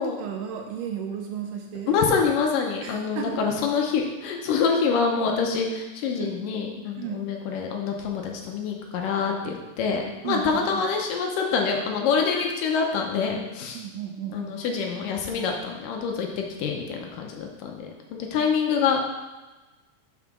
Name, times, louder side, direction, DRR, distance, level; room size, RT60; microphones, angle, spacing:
voice 1, 0.0-2.0 2.8-3.4 6.2-6.4 7.0-7.2 10.2-10.8 13.7-14.6, right 8 dB, 75° right, 3 dB, 2.0 m, -34 dB
voice 2, 1.9-13.8 14.3-19.0, left 5 dB, 75° left, 2 dB, 2.3 m, -26 dB
6.1 x 5.6 x 6.0 m, 1.2 s
omnidirectional pair, 4.2 m